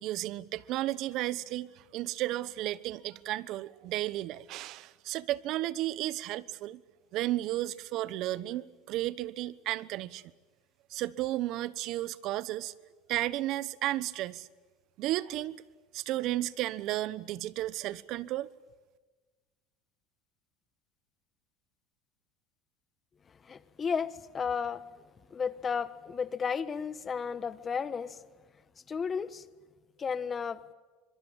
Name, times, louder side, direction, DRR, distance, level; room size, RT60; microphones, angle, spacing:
voice 1, 0.0-6.8 7.1-10.2 10.9-12.7 13.1-14.5 15.0-15.6 15.9-18.5, right 15 dB, 60° right, 1.1 m, -33 dB
voice 2, 23.4-24.8 25.3-28.2 28.9-29.4 30.0-30.6, left 6 dB, 30° left, 1.3 m, -33 dB
26.0 x 22.5 x 8.9 m
supercardioid pair, 105°, 0 cm